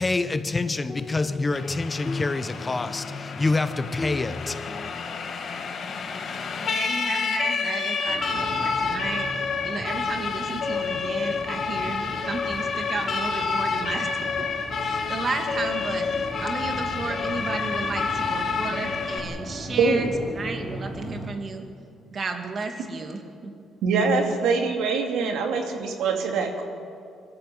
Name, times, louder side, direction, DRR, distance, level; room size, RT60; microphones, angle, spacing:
voice 1, 0.0-4.9, left 3 dB, 20° left, 0.8 m, -26 dB
Siren, 1.5-19.2, left 5 dB, 50° left, 2.0 m, -29 dB
voice 2, 6.6-9.3 9.6-14.5 14.8-21.7 22.1-23.5, right 3 dB, 40° right, 2.5 m, -33 dB
sound 1, 8.1-21.3, equal, ahead, 4.7 m, -38 dB
voice 3, 19.8-20.2 23.8-26.6, right 4 dB, 90° right, 2.8 m, -23 dB
23.5 x 14.0 x 7.9 m
cardioid pair, 115°, 0 cm